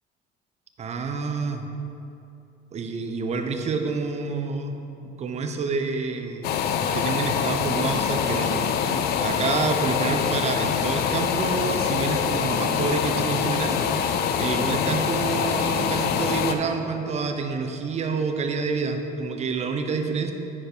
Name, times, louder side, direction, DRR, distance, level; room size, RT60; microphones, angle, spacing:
voice 1, 0.8-1.6 2.7-4.8 5.2-6.5 6.9-8.6 9.2-13.8 14.4-20.3, right 4 dB, 40° right, 5 dB, 0.7 m, -28 dB
sound 1, 6.4-16.5, left 7 dB, 70° left, 0.6 m, -24 dB
9.9 x 5.0 x 4.6 m, 2.8 s
cardioid pair, 110°, 17 cm